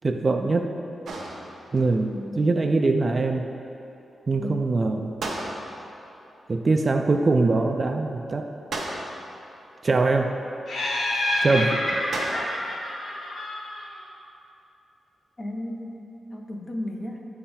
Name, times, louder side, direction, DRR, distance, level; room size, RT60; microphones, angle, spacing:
voice 1, 0.0-0.7 1.7-3.4 4.3-5.1 6.5-8.5 9.8-10.3 11.4-11.8, right 3 dB, 35° right, 5 dB, 0.3 m, -22 dB
sound 1, 1.1-1.9 5.2-6.0 8.7-9.5 12.1-12.8, right 2 dB, 80° right, 0.8 m, -34 dB
voice 2, 2.1-2.6 4.4-5.0 12.3-12.5 15.4-16.0 16.3-17.2, left 1 dB, 25° left, 2 dB, 0.6 m, -35 dB
Laughter, 10.7-14.0, left 1 dB, 70° left, 1.3 m, -28 dB
8.5 x 4.2 x 3.8 m, 2.9 s
wide cardioid pair, 130°, 0 cm